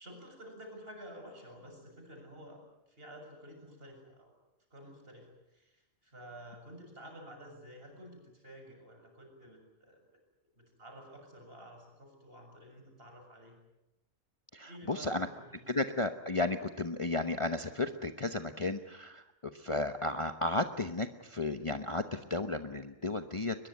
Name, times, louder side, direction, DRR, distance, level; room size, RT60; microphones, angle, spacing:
voice 1, 0.0-4.4 4.7-10.0 10.6-13.6 14.7-15.9, equal, 50° right, 3 dB, 7.5 m, -51 dB
voice 2, 14.5-15.3 15.7-19.2 19.5-23.6, left 2 dB, 25° left, 8 dB, 1.0 m, -33 dB
22.0 x 22.0 x 9.6 m, 0.93 s
omnidirectional pair, 1.3 m